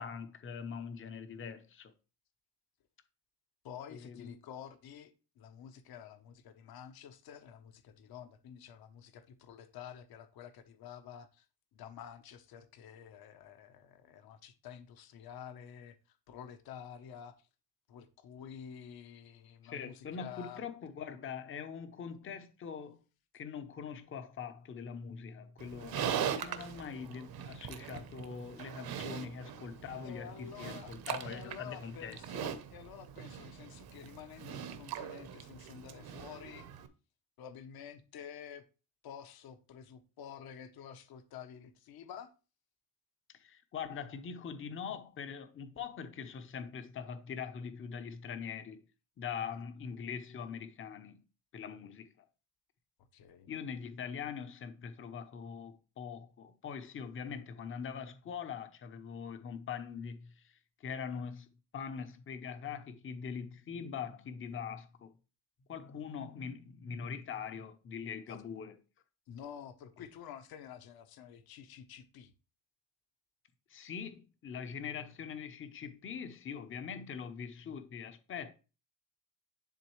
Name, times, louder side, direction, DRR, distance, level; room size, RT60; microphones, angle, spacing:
voice 1, 0.0-1.9 3.9-4.3 19.6-23.0 23.3-32.2 43.3-48.8 49.2-51.2 51.5-52.1 53.5-60.5 60.8-65.1 65.7-68.8 73.7-78.5, left 6 dB, 30° left, 0.7 m, -43 dB
voice 2, 3.6-11.4 11.7-17.5 17.9-20.6 30.0-30.9 31.2-36.7 37.4-38.6 39.0-42.3 49.5-49.6 53.1-53.5 68.3-68.4 69.3-72.3, left 8 dB, 55° left, 0.9 m, -50 dB
Livestock farm animals working animals, 25.6-36.9, right 9 dB, 55° right, 0.9 m, -41 dB
10.5 x 3.7 x 3.1 m
cardioid pair, 135°, 45 cm